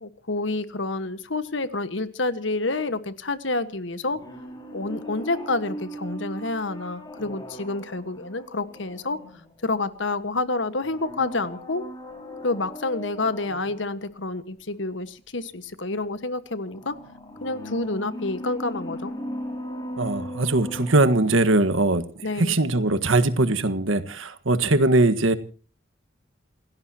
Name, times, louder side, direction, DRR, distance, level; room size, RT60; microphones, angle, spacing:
voice 1, 0.0-4.2 4.7-9.2 9.6-11.9 12.4-17.0 17.4-19.1 22.2-22.6, left 2 dB, 70° left, 1.5 m, -28 dB
sound 1, 4.0-9.8 10.8-13.9 16.6-21.8 22.1-22.2, equal, 20° left, 5.3 m, -38 dB
voice 2, 20.0-22.0 22.4-25.3, right 2 dB, 90° right, 1.6 m, -21 dB
29.0 x 16.5 x 2.9 m
head